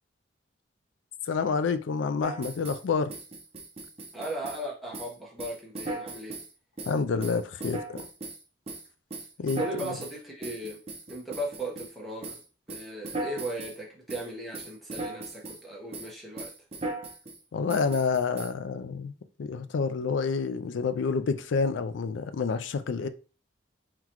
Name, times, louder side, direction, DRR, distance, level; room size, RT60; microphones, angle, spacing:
voice 1, 1.3-3.1 6.9-8.1 9.4-10.0 17.5-19.1 19.4-23.1, left 5 dB, 75° left, 0.4 m, -28 dB
sound 1, 2.2-2.8 3.1-4.6 4.9-5.1 5.4-6.5 6.8-8.4 8.7-11.9 12.2-12.4 12.7-13.8 14.1-14.3 14.5-15.6 15.9-16.1 16.4-17.4 17.7-18.5, right 2 dB, 30° right, 0.8 m, -38 dB
voice 2, 4.1-6.4 9.6-10.8 11.1-12.4 12.7-16.5, right 1 dB, ahead, 1.0 m, -37 dB
3.9 x 3.0 x 3.0 m
head